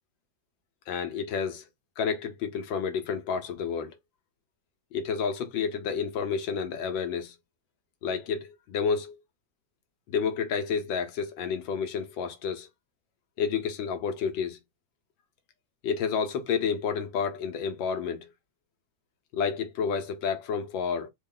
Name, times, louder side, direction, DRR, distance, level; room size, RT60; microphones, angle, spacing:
voice 1, 0.9-1.6 2.0-3.9 4.9-7.3 8.0-9.2 10.1-12.7 13.4-14.6 15.8-18.3 19.3-21.1, left 6 dB, 80° left, 1.5 m, -30 dB
4.0 x 2.2 x 3.7 m
omnidirectional pair, 2.1 m